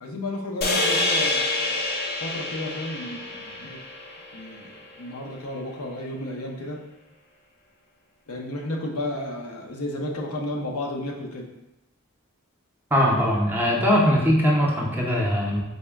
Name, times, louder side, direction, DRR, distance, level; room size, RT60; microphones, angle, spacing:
voice 1, 0.0-1.8 2.2-3.8 4.3-6.8 8.3-11.5, left 1 dB, 85° left, 0 dB, 0.6 m, -32 dB
sound 1, 0.6-5.0, left 2 dB, 45° left, 0.5 m, -27 dB
voice 2, 12.9-15.6, equal, 10° right, -2 dB, 0.6 m, -21 dB
4.1 x 2.1 x 3.4 m, 0.89 s
head